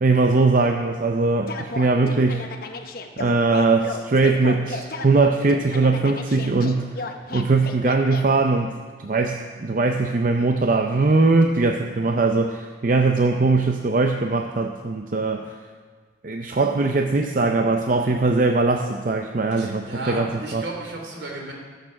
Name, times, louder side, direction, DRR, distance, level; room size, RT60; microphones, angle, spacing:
voice 1, 0.0-2.4 3.2-6.9 7.3-15.5 16.2-20.6, right 3 dB, 45° right, 4 dB, 0.6 m, -21 dB
sound 1, 1.5-8.2, left 3 dB, 55° left, 1.0 m, -34 dB
voice 2, 19.5-21.5, right 2 dB, 75° right, -1 dB, 3.1 m, -34 dB
19.5 x 6.7 x 5.8 m, 1.5 s
head